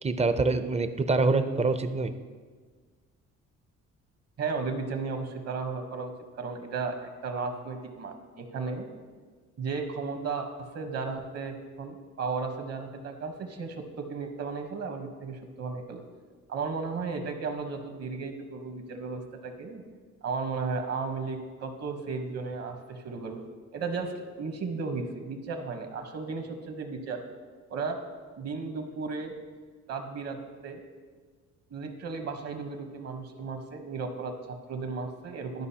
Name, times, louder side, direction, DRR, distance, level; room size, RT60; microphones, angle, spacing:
voice 1, 0.0-2.2, right 3 dB, 20° right, 10 dB, 0.5 m, -25 dB
voice 2, 4.4-6.1 6.4-8.9 9.6-16.0 16.5-19.8 20.2-23.4 23.7-27.2 27.7-28.0 28.4-29.3 29.9-30.4 30.6-30.8 31.7-35.7, right 4 dB, 55° right, 5 dB, 1.1 m, -34 dB
12.0 x 5.2 x 2.8 m, 1.5 s
cardioid pair, 90°, 30 cm